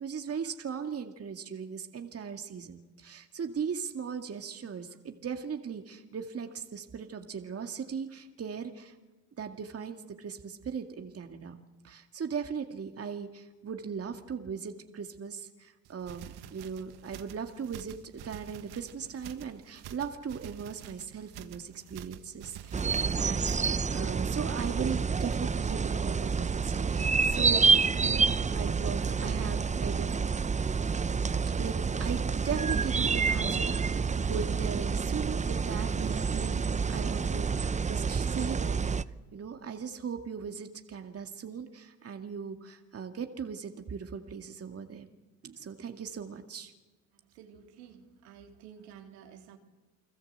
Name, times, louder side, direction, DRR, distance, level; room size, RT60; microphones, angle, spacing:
voice 1, 0.0-9.0 9.4-11.6 11.8-22.8 23.2-27.7 27.9-30.2 31.6-36.6 36.9-38.8 39.3-45.1 45.4-46.7, right 6 dB, 30° right, 2.2 m, -38 dB
sound 1, 15.9-23.8, right 11 dB, 55° right, 1.5 m, -48 dB
sound 2, 22.7-39.0, right 5 dB, 15° right, 0.8 m, -28 dB
voice 2, 47.3-49.6, right 8 dB, 75° right, 3.6 m, -51 dB
30.0 x 21.0 x 8.1 m
hypercardioid pair, 70°, 46 cm